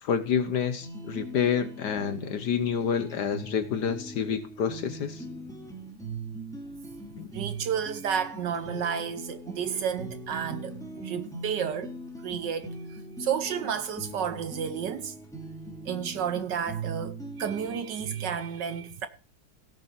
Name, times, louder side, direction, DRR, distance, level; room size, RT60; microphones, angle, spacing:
voice 1, 0.0-5.2 7.1-7.3, left 7 dB, 60° left, 1.2 m, -28 dB
sound 1, 0.8-18.4, right 2 dB, ahead, 2.0 m, -40 dB
voice 2, 7.3-12.0 12.2-15.2 15.8-19.1, right 8 dB, 65° right, 1.3 m, -31 dB
17.0 x 7.6 x 4.5 m
omnidirectional pair, 2.3 m